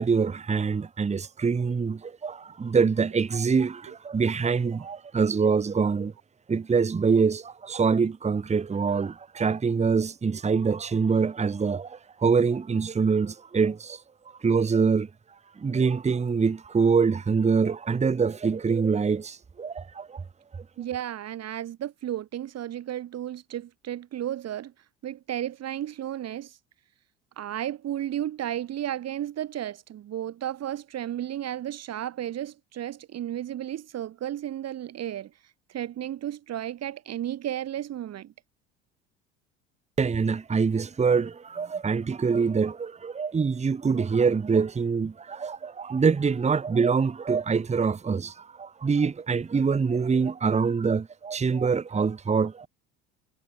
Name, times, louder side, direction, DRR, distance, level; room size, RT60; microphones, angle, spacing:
voice 1, 0.0-6.1 6.5-14.0 14.4-15.1 15.6-20.2 40.0-52.7, right 5 dB, 20° right, 1.2 m, -25 dB
voice 2, 20.8-24.7 25.0-26.6 27.4-38.3, right 11 dB, 50° right, 3.0 m, -33 dB
hypercardioid pair, 65°, 33 cm